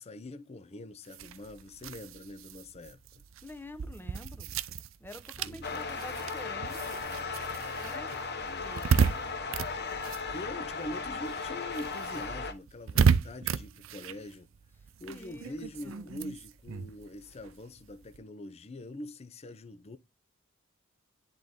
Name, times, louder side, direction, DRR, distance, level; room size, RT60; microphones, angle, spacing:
voice 1, 0.0-3.0 5.4-5.9 10.1-14.5 15.0-20.0, left 1 dB, 30° left, 0.5 m, -43 dB
sound 1, 1.1-11.0 11.2-18.2, right 6 dB, 75° right, 0.5 m, -33 dB
voice 2, 3.4-4.5 5.0-7.1 7.8-8.1 8.4-9.2 15.0-16.1, left 1 dB, 10° left, 0.9 m, -48 dB
sound 2, 5.3-12.5, right 1 dB, 55° right, 1.8 m, -50 dB
sound 3, 5.6-12.5, left 4 dB, 55° left, 1.2 m, -36 dB
10.0 x 3.8 x 3.6 m
head